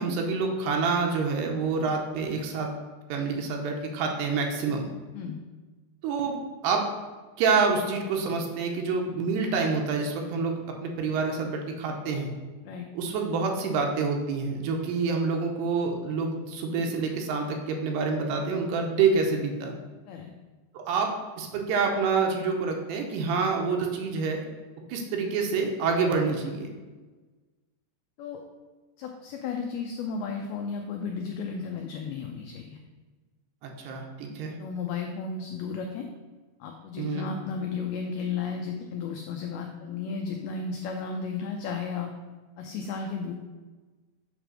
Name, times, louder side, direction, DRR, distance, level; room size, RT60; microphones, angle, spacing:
voice 1, 0.0-2.7 3.1-4.9 6.0-6.8 7.4-12.3 12.9-19.7 20.7-21.1 21.4-24.4 24.9-26.7 33.6-34.6 37.0-37.3, right 4 dB, 75° right, 2 dB, 2.7 m, -27 dB
voice 2, 29.0-32.8 34.6-36.1 36.6-42.1 42.6-43.3, left 5 dB, 85° left, 3 dB, 2.1 m, -34 dB
8.2 x 3.3 x 6.1 m, 1.3 s
omnidirectional pair, 5.0 m